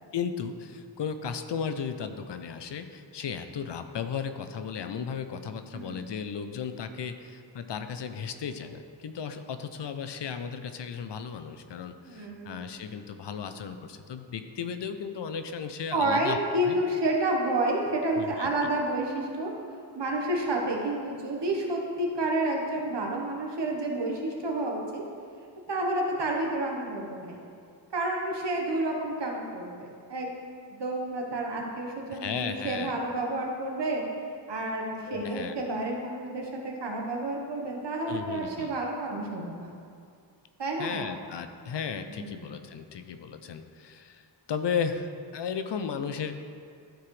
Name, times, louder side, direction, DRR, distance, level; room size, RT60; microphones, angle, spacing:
voice 1, 0.1-16.4 16.6-16.8 18.1-18.7 32.1-33.0 35.1-35.5 38.1-38.7 40.8-46.3, left 6 dB, 70° left, 8 dB, 0.6 m, -35 dB
voice 2, 12.1-12.7 15.9-19.5 19.9-25.0 25.7-27.4 27.9-30.3 30.7-34.0 34.5-39.7 40.6-41.1 42.1-42.4, right 1 dB, 70° right, 0 dB, 1.3 m, -30 dB
12.5 x 4.8 x 3.3 m, 2.3 s
wide cardioid pair, 100°, 44 cm